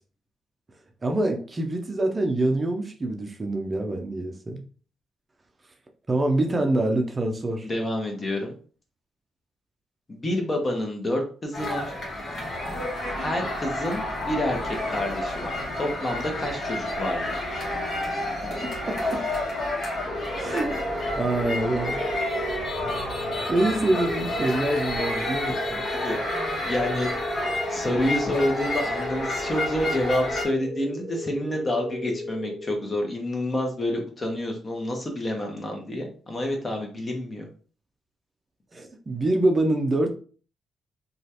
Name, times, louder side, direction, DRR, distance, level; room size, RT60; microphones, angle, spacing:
voice 1, 1.0-4.6 6.1-7.7 18.6-19.3 20.4-20.8 21.1-22.0 22.9-23.0 23.5-25.8 38.7-40.1, right 2 dB, 30° right, 3 dB, 0.5 m, -25 dB
voice 2, 7.6-8.5 10.1-11.9 13.2-17.4 25.5-27.1 27.7-37.5, left 1 dB, 35° left, 2 dB, 1.1 m, -28 dB
sound 1, 11.5-30.4, left 1 dB, 55° left, 1.2 m, -30 dB
sound 2, 20.1-33.2, left 1 dB, 5° left, 0.7 m, -36 dB
2.9 x 2.4 x 2.8 m, 0.40 s
supercardioid pair, 65°, 0 cm